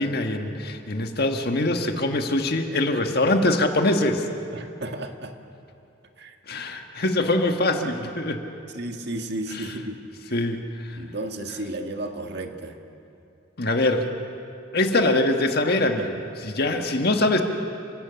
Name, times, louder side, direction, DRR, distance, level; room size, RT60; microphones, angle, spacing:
voice 1, 0.0-4.2 6.5-8.4 10.3-10.6 10.9-11.0 13.6-14.1 14.7-17.4, left 2 dB, 50° left, 5 dB, 1.6 m, -23 dB
voice 2, 4.5-5.3 6.2-6.4 8.7-10.0 10.3-10.4 11.0-12.8, right 1 dB, 55° right, 4 dB, 1.7 m, -33 dB
29.5 x 16.5 x 7.0 m, 2.7 s
head